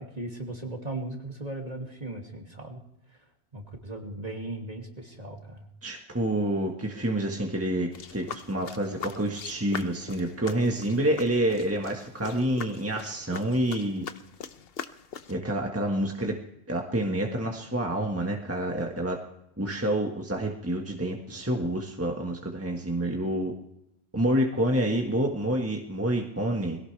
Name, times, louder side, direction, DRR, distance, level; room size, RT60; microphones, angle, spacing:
voice 1, 0.0-2.8 3.5-5.7, right 2 dB, 35° right, 1 dB, 2.6 m, -37 dB
voice 2, 5.8-14.0 15.3-16.3 16.7-19.2 19.6-23.5 24.1-26.8, right 1 dB, 15° right, 1 dB, 1.5 m, -28 dB
sound 1, 7.9-15.4, left 7 dB, 65° left, 1.0 m, -42 dB
22.0 x 17.0 x 3.4 m, 0.81 s
omnidirectional pair, 1.1 m